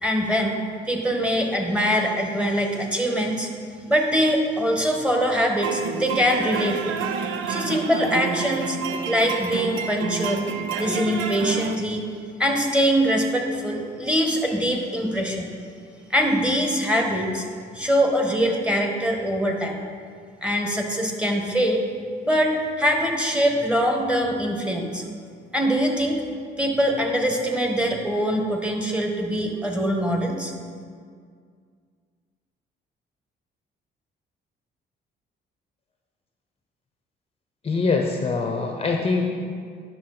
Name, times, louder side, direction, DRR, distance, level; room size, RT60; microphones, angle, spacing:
voice 1, 0.0-0.6 0.9-3.5 3.9-6.9 7.5-10.5 10.8-12.0 12.4-15.5 16.1-17.5 17.7-19.8 20.4-21.9 22.2-25.0 25.5-26.2 26.6-30.5, equal, 5° right, 1 dB, 1.3 m, -23 dB
sound 1, 5.6-11.8, right 6 dB, 85° right, 0.6 m, -29 dB
voice 2, 37.6-39.2, left 4 dB, 30° left, 2 dB, 0.7 m, -23 dB
10.5 x 6.1 x 3.9 m, 2.1 s
cardioid pair, 90°, 20 cm